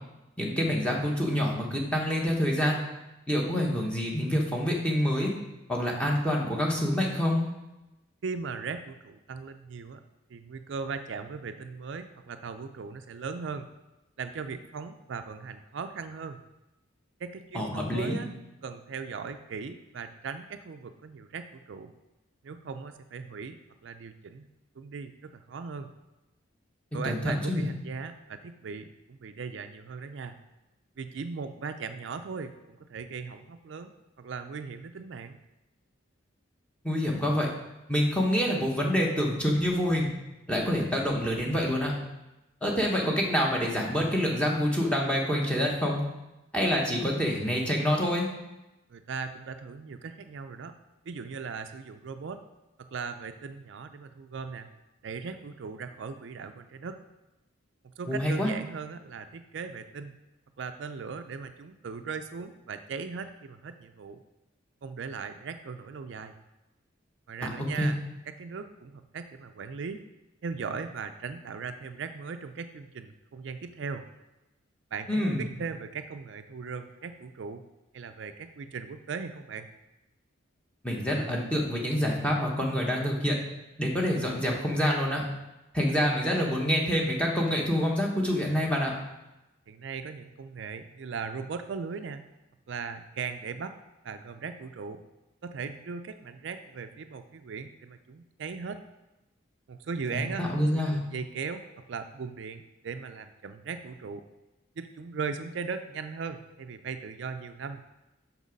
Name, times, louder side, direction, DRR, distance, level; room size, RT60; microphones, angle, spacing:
voice 1, 0.4-2.8 3.3-5.3 5.7-7.5 17.5-18.2 27.0-27.7 36.8-37.5 37.9-40.1 40.5-41.9 42.6-46.0 46.5-48.3 58.1-58.5 67.4-67.9 75.1-75.5 80.8-83.4 83.8-85.2 85.7-88.9 100.1-101.0, equal, 5° left, -2 dB, 1.2 m, -27 dB
voice 2, 8.2-10.0 10.3-13.7 14.2-16.4 17.2-18.3 18.6-21.9 22.4-24.5 24.8-25.9 26.9-30.4 31.0-33.9 34.2-35.4 48.9-50.8 51.1-52.4 52.8-54.7 55.0-57.0 57.8-60.1 60.6-64.2 64.8-66.3 67.3-68.0 68.3-70.0 70.4-74.0 74.9-77.6 77.9-79.7 89.7-92.2 92.7-93.8 94.0-95.0 95.4-98.8 99.7-101.6 101.9-104.2 104.8-107.8, right 5 dB, 60° right, 8 dB, 0.4 m, -38 dB
6.3 x 6.0 x 5.2 m, 0.98 s
head